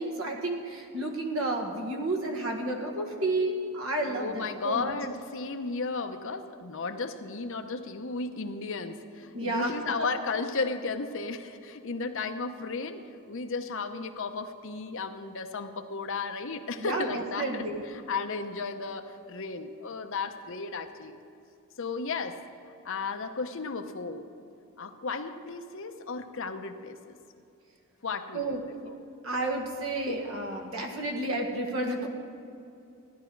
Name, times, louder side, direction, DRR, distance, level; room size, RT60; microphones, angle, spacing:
voice 1, 0.0-4.9 9.3-9.7 16.8-17.8 28.3-28.9 29.2-32.1, right 2 dB, 65° right, 2 dB, 1.8 m, -31 dB
voice 2, 4.0-13.0 13.3-21.2 21.8-22.4 22.7-24.3 24.8-27.2 28.0-28.6 28.8-29.0, left 4 dB, 60° left, 7 dB, 0.8 m, -34 dB
15.5 x 11.0 x 4.6 m, 2.7 s
head